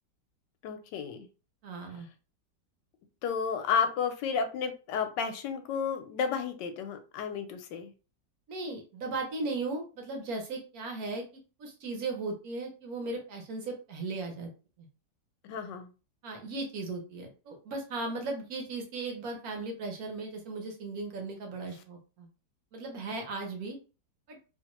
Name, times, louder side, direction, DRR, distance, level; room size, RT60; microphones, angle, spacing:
voice 1, 0.6-1.3 3.2-7.9 15.4-15.9, left 6 dB, 80° left, 7 dB, 1.2 m, -32 dB
voice 2, 1.6-2.1 8.5-11.2 11.6-14.5 16.2-22.3 22.7-23.8 24.3-24.4, right 3 dB, 65° right, 2 dB, 1.1 m, -37 dB
3.0 x 2.1 x 2.9 m, 0.33 s
omnidirectional pair, 1.9 m